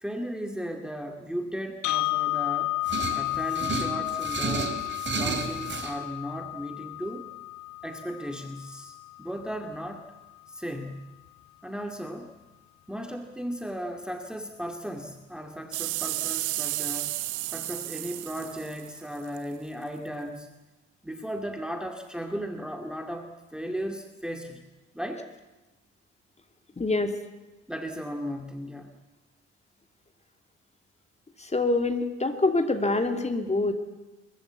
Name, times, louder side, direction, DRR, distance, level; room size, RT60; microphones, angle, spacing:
voice 1, 0.0-2.7 3.1-4.8 5.1-7.3 7.8-10.1 10.5-11.2 11.6-12.4 12.9-17.2 17.5-20.5 21.0-24.6 24.9-25.3 27.7-28.9, equal, ahead, 4 dB, 2.2 m, -36 dB
sound 1, 1.8-9.9, left 19 dB, 50° left, 1.0 m, -32 dB
sound 2, 2.9-5.9, right 4 dB, 30° right, 3.6 m, -32 dB
sound 3, 15.7-19.4 20.1-20.2, right 18 dB, 55° right, 0.9 m, -32 dB
voice 2, 26.8-27.2 31.4-33.7, left 2 dB, 20° left, 6 dB, 2.8 m, -25 dB
23.0 x 21.0 x 8.4 m, 1.1 s
figure-of-eight pair, 50°, 36 cm